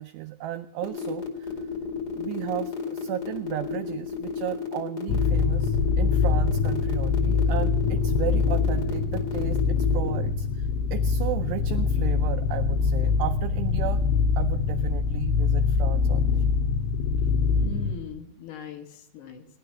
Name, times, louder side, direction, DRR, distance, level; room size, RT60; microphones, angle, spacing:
voice 1, 0.0-1.7 2.1-14.0 14.4-16.5, right 14 dB, 85° right, 8 dB, 2.4 m, -34 dB
sound 1, 0.8-10.2, left 5 dB, 35° left, 1.8 m, -33 dB
sound 2, 5.1-17.9, left 5 dB, 85° left, 3.8 m, -24 dB
voice 2, 17.5-19.5, left 5 dB, 65° left, 5 dB, 3.1 m, -40 dB
19.5 x 11.5 x 4.5 m, 0.72 s
omnidirectional pair, 5.5 m